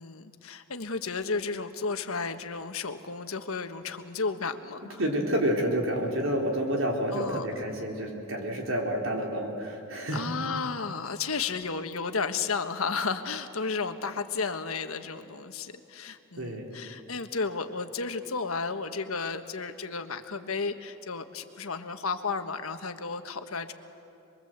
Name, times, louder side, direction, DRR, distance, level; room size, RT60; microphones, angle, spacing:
voice 1, 0.0-5.0 7.1-7.5 10.1-23.7, left 4 dB, 85° left, 8 dB, 1.4 m, -33 dB
voice 2, 5.0-10.3 16.4-16.7, right 1 dB, 70° right, 0 dB, 4.2 m, -29 dB
27.5 x 22.5 x 8.1 m, 2.7 s
head